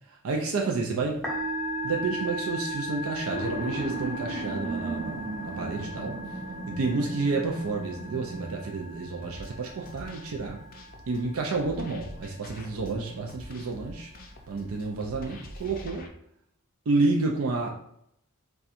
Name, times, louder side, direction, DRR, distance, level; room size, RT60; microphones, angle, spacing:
voice 1, 0.1-1.2 1.8-6.2 6.7-10.6 11.1-14.1 14.5-16.1 16.9-17.7, right 3 dB, 80° right, 0 dB, 0.4 m, -30 dB
Musical instrument, 1.1-15.8, equal, ahead, 0.7 m, -38 dB
sound 1, 3.3-9.3, right 2 dB, 45° right, 0.7 m, -36 dB
sound 2, 9.2-16.1, left 1 dB, 45° left, 0.5 m, -45 dB
4.1 x 2.3 x 2.5 m, 0.73 s
head